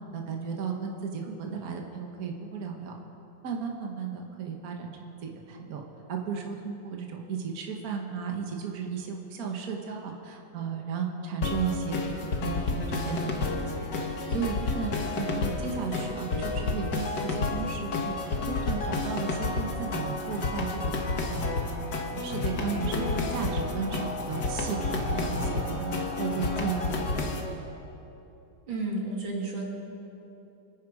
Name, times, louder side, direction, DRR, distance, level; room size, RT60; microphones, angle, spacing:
voice 1, 0.1-3.0 3.4-5.8 6.1-20.9 21.3-21.6 22.1-27.4, right 6 dB, 55° right, 1 dB, 1.6 m, -35 dB
sound 1, 11.4-27.4, left 3 dB, 65° left, 2.0 m, -30 dB
sound 2, 17.7-26.8, left 1 dB, 10° right, 2.9 m, -42 dB
voice 2, 28.7-29.6, right 2 dB, 90° right, -1 dB, 3.0 m, -32 dB
26.5 x 9.6 x 4.9 m, 3.0 s
omnidirectional pair, 2.0 m